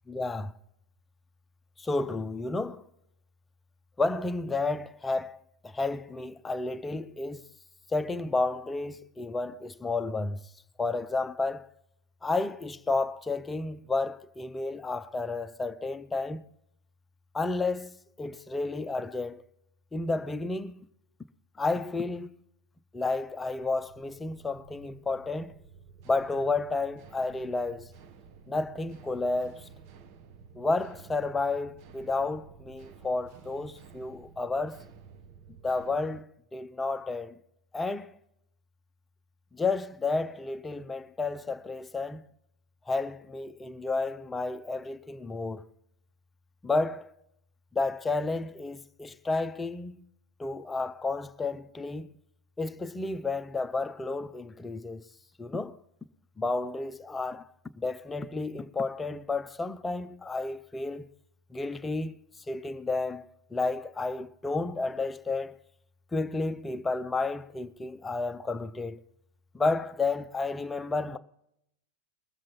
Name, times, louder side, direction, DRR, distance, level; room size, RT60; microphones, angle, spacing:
voice 1, 0.1-0.5 1.8-2.8 4.0-5.4 5.6-7.4 7.9-10.4 10.8-11.7 12.2-16.4 17.3-19.4 19.9-20.9 21.6-22.3 22.9-25.5 26.0-27.9 28.5-29.7 30.6-34.8 35.6-37.3 37.7-38.1 39.5-42.2 42.9-45.7 46.6-47.1 47.7-50.1 50.4-52.2 52.6-55.0 55.4-55.8 56.4-61.1 61.5-65.6 66.1-69.0 69.5-71.2, left 3 dB, 10° left, 0.6 m, -31 dB
sound 1, 23.3-36.2, right 6 dB, 45° right, 0.9 m, -53 dB
21.0 x 7.5 x 4.2 m
figure-of-eight pair, 90°, 0 cm